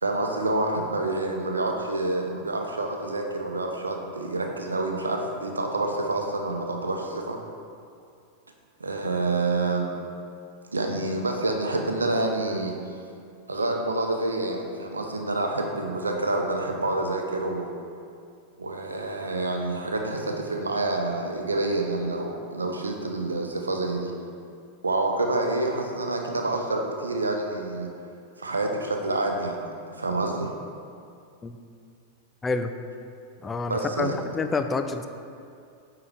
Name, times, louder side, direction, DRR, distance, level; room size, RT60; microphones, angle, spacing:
voice 1, 0.0-7.4 8.8-9.9 10.7-12.7 13.5-17.7 18.6-24.1 24.8-27.9 28.4-29.6 30.0-30.5 33.7-34.2, right 2 dB, 75° right, 2 dB, 0.7 m, -27 dB
voice 2, 32.4-32.7 33.4-35.1, left 4 dB, 15° left, 7 dB, 0.4 m, -28 dB
8.8 x 3.9 x 4.5 m, 2.4 s
figure-of-eight pair, 90°, 0 cm